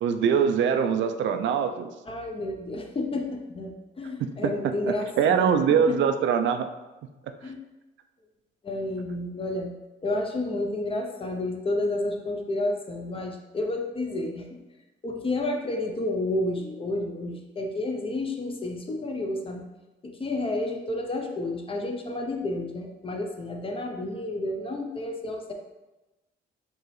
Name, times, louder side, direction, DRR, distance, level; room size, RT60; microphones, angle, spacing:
voice 1, 0.0-1.9 4.2-6.7 7.4-7.5, right 7 dB, 70° right, 8 dB, 0.4 m, -23 dB
voice 2, 2.1-6.0 7.4-7.6 8.6-9.7 10.0-14.6 15.0-19.6 20.0-25.5, left 2 dB, 25° left, 3 dB, 0.6 m, -30 dB
4.6 x 2.8 x 3.1 m, 1.1 s
cardioid pair, 90°, 20 cm